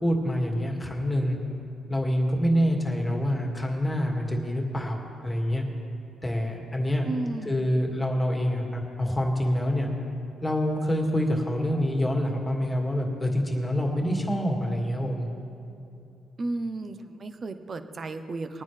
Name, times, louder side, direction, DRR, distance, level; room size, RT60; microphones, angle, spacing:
voice 1, 0.0-1.4 1.9-5.6 6.2-7.1 7.5-9.9 10.4-15.3, equal, 15° left, 1 dB, 2.2 m, -26 dB
voice 2, 7.0-7.7 16.4-18.6, right 2 dB, 45° right, 9 dB, 0.8 m, -33 dB
21.0 x 9.5 x 3.4 m, 2.7 s
supercardioid pair, 65°, 0 cm